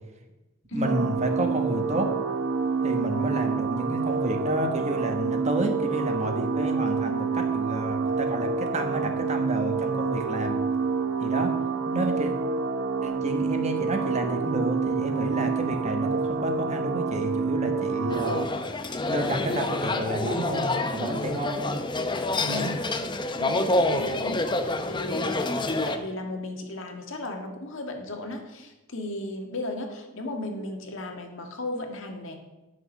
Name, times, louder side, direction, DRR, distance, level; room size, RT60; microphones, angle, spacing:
voice 1, 0.7-2.1 2.8-10.6 11.2-11.5 11.8-12.3 13.0-18.4 19.1-21.6 22.4-22.7, right 1 dB, 35° right, 4 dB, 1.3 m, -30 dB
sound 1, 0.8-18.5, right 5 dB, 65° right, 0.7 m, -28 dB
sound 2, 18.1-26.0, left 2 dB, 20° left, 0.7 m, -27 dB
voice 2, 23.4-25.4 25.8-32.4, left 1 dB, 70° left, 3 dB, 1.7 m, -35 dB
11.0 x 6.4 x 6.5 m, 1.1 s
head